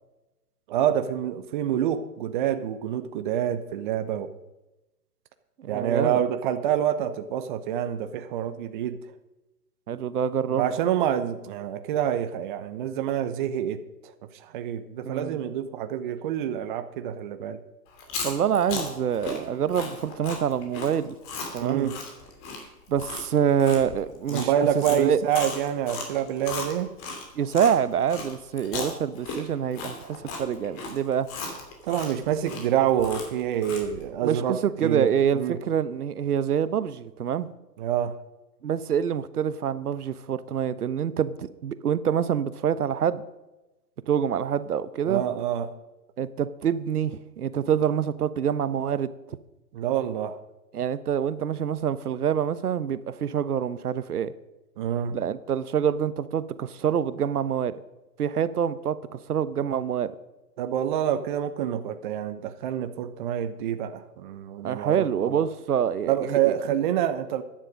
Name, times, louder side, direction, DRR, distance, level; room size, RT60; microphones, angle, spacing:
voice 1, 0.7-4.3 5.7-9.0 10.5-17.6 21.6-22.0 24.3-26.9 31.8-35.6 37.8-38.2 45.1-45.7 49.7-50.4 54.8-55.2 60.6-65.5 66.1-67.4, right 10 dB, 30° right, 10 dB, 0.8 m, -27 dB
voice 2, 5.6-6.2 9.9-10.7 15.0-15.4 18.2-21.2 21.5-21.9 22.9-24.5 25.0-25.2 27.3-31.3 34.2-37.5 38.6-43.2 44.1-45.2 46.2-49.1 50.7-54.3 55.1-57.7 58.2-60.1 64.6-66.5, right 8 dB, 65° right, 15 dB, 1.0 m, -26 dB
Chewing mastication, 17.9-27.7 28.1-34.0, left 4 dB, 25° left, 2.8 m, -36 dB
14.5 x 10.0 x 5.2 m, 1.0 s
hypercardioid pair, 135°, 48 cm